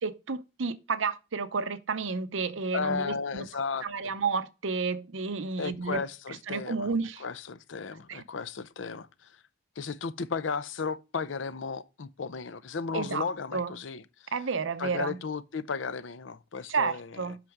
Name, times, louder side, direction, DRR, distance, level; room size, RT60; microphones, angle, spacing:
voice 1, 0.0-3.5 3.8-6.0 6.5-7.2 8.1-8.2 12.9-13.7 14.3-15.2 16.7-17.4, right 4 dB, 85° right, 0.7 m, -31 dB
voice 2, 2.7-3.9 5.6-6.9 7.2-9.1 9.8-14.0 14.8-17.4, left 5 dB, 75° left, 0.6 m, -34 dB
8.1 x 6.0 x 3.5 m
head